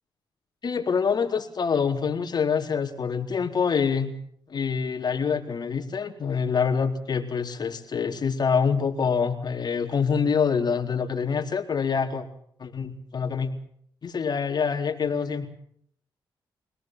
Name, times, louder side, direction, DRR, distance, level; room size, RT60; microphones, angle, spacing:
voice 1, 0.6-4.2 4.5-12.2 12.6-13.5 14.0-15.5, left 6 dB, 50° left, 3 dB, 4.1 m, -26 dB
25.5 x 18.0 x 7.7 m, 0.65 s
cardioid pair, 75°, 9 cm